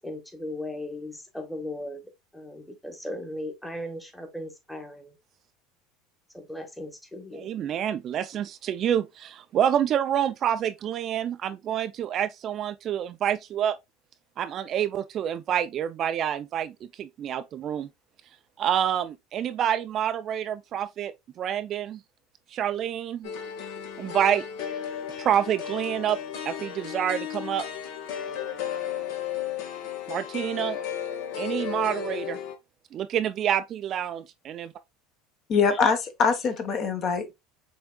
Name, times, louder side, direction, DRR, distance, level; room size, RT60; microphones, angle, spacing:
voice 1, 0.0-2.0 2.3-5.1 6.3-7.5, left 1 dB, 5° left, 1.1 m, -37 dB
voice 2, 7.4-13.8 14.4-17.9 18.6-22.0 22.5-23.3 24.0-24.5 25.2-26.2 26.5-27.6 30.1-30.8 31.4-32.4 32.9-34.7, right 10 dB, 40° right, 0.3 m, -27 dB
sound 1, 23.2-32.5, left 9 dB, 70° left, 1.1 m, -34 dB
voice 3, 35.5-37.3, left 5 dB, 40° left, 1.0 m, -23 dB
5.8 x 3.5 x 2.3 m
supercardioid pair, 125°, 0 cm